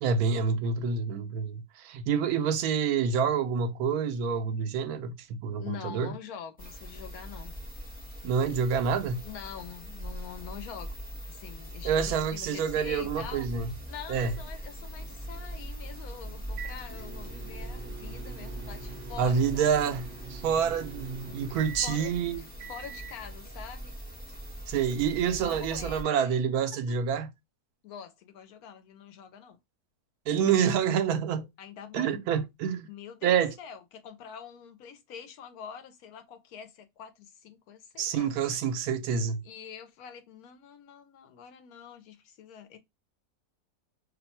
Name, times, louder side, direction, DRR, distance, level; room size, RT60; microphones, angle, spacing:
voice 1, 0.0-6.1 8.2-9.3 11.8-13.7 14.1-14.3 19.2-22.4 24.7-27.3 30.3-31.5 31.9-32.9 33.2-33.5 38.0-39.4, right 7 dB, 85° right, 1.1 m, -27 dB
voice 2, 5.6-7.5 9.2-11.0 11.3-19.7 21.4-23.9 25.4-26.1 27.8-29.6 31.6-32.2 32.9-38.3 39.4-42.8, left 8 dB, 75° left, 1.0 m, -45 dB
sound 1, 6.6-26.0, right 1 dB, 5° left, 1.0 m, -41 dB
sound 2, 14.1-23.2, right 6 dB, 55° right, 0.6 m, -46 dB
2.8 x 2.2 x 4.0 m
omnidirectional pair, 1.6 m